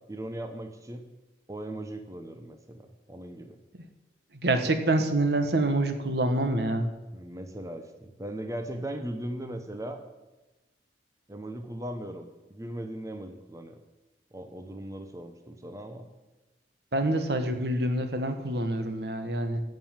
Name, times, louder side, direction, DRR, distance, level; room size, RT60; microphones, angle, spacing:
voice 1, 0.1-1.1 1.5-3.6 7.1-10.0 11.3-13.8 14.3-16.1, right 1 dB, 20° right, 6 dB, 0.8 m, -38 dB
voice 2, 4.4-6.9 16.9-19.6, right 2 dB, 65° right, 8 dB, 1.2 m, -26 dB
15.0 x 5.4 x 7.3 m, 1.1 s
head